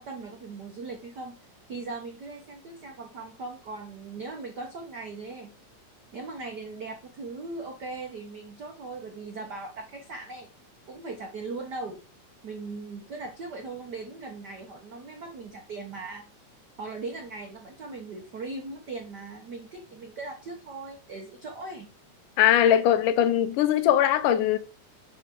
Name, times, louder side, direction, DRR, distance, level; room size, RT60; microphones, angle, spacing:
voice 1, 0.0-1.4 1.7-5.5 6.1-10.5 10.9-12.0 12.4-16.3 16.8-21.9, right 3 dB, 80° right, 0.9 m, -39 dB
voice 2, 22.4-24.6, left 10 dB, 90° left, 2.3 m, -21 dB
11.0 x 5.0 x 3.7 m
omnidirectional pair, 3.6 m